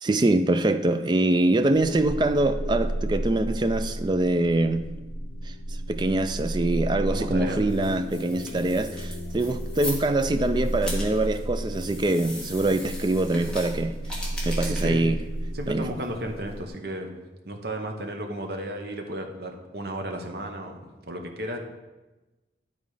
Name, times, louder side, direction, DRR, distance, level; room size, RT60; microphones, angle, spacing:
voice 1, 0.0-4.9 5.5-5.6 5.9-14.0 14.4-15.2 15.7-15.8, right 2 dB, 25° right, 0.3 m, -24 dB
sound 1, 1.7-16.7, right 1 dB, 65° left, 0.7 m, -33 dB
voice 2, 7.1-7.7 14.5-15.0 15.5-17.2 17.4-21.6, right 1 dB, 65° right, 1.0 m, -34 dB
sound 2, 7.4-16.6, left 1 dB, 5° left, 1.5 m, -41 dB
10.5 x 4.1 x 4.8 m
head